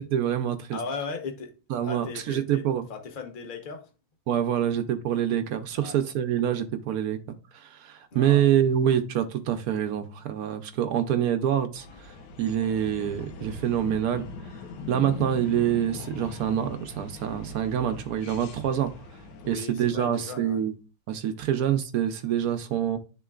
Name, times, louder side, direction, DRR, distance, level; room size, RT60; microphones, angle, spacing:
voice 1, 0.0-0.8 1.7-2.9 4.3-7.2 7.5-14.3 14.9-18.9 19.5-20.7 21.1-23.0, right 10 dB, 85° right, 0.8 m, -26 dB
voice 2, 0.7-1.5 1.8-2.6 2.9-3.8 5.7-6.0 8.1-8.4 15.1-15.2 19.4-20.6 22.7-22.8, left 4 dB, 40° left, 0.7 m, -37 dB
sound 1, 11.8-19.6, left 3 dB, 65° left, 1.2 m, -40 dB
11.0 x 3.8 x 2.4 m
omnidirectional pair, 2.3 m